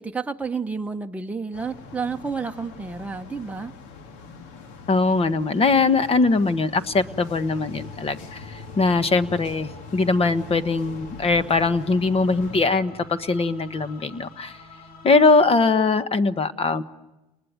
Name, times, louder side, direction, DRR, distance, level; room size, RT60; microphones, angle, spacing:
voice 1, 0.0-3.7, right 5 dB, 5° right, 4 dB, 1.2 m, -30 dB
sound 1, 1.5-12.6, left 4 dB, 65° left, 2.3 m, -43 dB
voice 2, 4.9-14.6 15.0-16.8, left 3 dB, 30° left, 13 dB, 1.4 m, -21 dB
sound 2, 6.1-15.5, left 4 dB, 45° left, 3.0 m, -46 dB
29.5 x 20.5 x 9.5 m, 1.0 s
hypercardioid pair, 85°, 20 cm